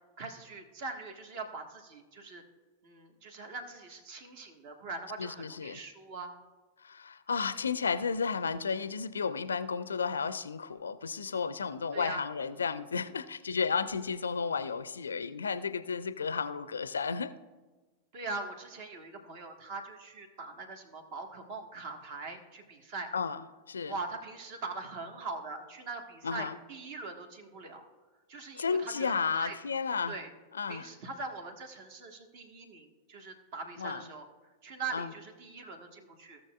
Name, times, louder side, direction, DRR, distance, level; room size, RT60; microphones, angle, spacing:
voice 1, 0.2-2.4 2.8-6.3 11.9-12.2 18.1-23.1 23.9-27.8 28.3-29.5 30.1-30.3 30.7-36.4, right 3 dB, 50° right, 4 dB, 1.5 m, -42 dB
voice 2, 5.2-5.8 6.8-17.3 23.1-23.4 23.7-23.9 26.2-26.5 28.6-30.2 30.5-30.9 33.8-34.0 34.9-35.1, left 5 dB, 70° left, 14 dB, 0.4 m, -33 dB
16.5 x 6.5 x 2.4 m, 1.3 s
figure-of-eight pair, 90°, 0 cm